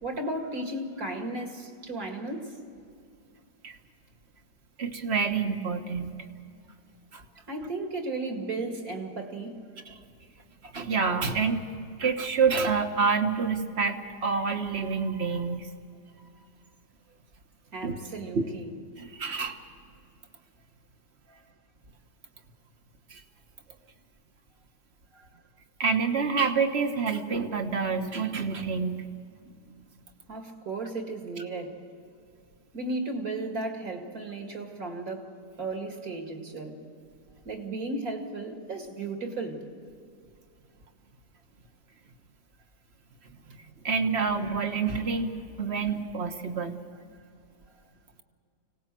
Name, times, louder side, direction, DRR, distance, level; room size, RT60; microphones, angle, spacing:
voice 1, 0.0-2.5 7.5-9.5 17.7-18.7 21.3-21.4 25.1-25.3 30.3-31.7 32.7-35.3 35.6-36.8 37.4-39.6, right 2 dB, 60° right, 3 dB, 2.6 m, -35 dB
voice 2, 4.8-6.2 7.1-7.2 9.8-10.0 10.6-11.6 12.0-15.7 17.8-17.9 18.3-18.4 19.0-19.6 23.1-23.2 25.8-29.1 43.5-46.8, right 5 dB, 40° right, 6 dB, 1.5 m, -28 dB
25.0 x 18.0 x 7.6 m, 2.4 s
omnidirectional pair, 1.7 m